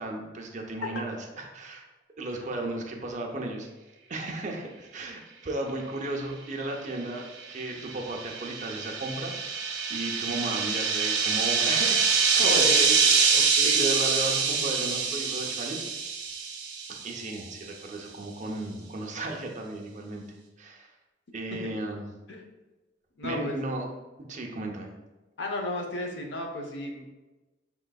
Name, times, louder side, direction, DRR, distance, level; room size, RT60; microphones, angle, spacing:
voice 1, 0.0-1.9 2.2-3.7 4.1-9.6 9.9-16.0 17.0-20.2 20.6-20.9 21.3-22.1 23.2-23.9 24.3-24.9, right 2 dB, 40° right, 1 dB, 0.6 m, -35 dB
sound 1, 7.4-17.2, right 5 dB, 65° right, 0.9 m, -25 dB
voice 2, 12.4-12.8 13.3-13.8 21.5-21.6 22.3-22.5 23.2-23.6 25.4-27.1, left 1 dB, 70° left, 1 dB, 0.7 m, -33 dB
5.7 x 3.7 x 2.3 m, 1.1 s
head